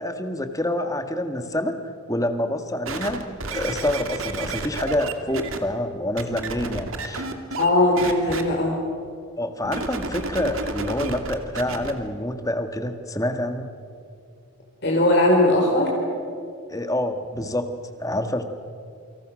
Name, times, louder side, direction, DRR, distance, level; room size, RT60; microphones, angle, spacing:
voice 1, 0.0-7.3 9.4-13.7 16.7-17.7 18.0-18.4, left 1 dB, 15° left, 7 dB, 1.7 m, -27 dB
sound 1, 2.9-5.6 6.2-7.7 8.0-8.4 9.6-11.9 12.6-12.7, right 3 dB, 65° right, 2.3 m, -31 dB
voice 2, 7.6-8.8 14.8-15.9, left 1 dB, 50° left, -1 dB, 4.0 m, -19 dB
29.0 x 25.5 x 6.4 m, 2.5 s
head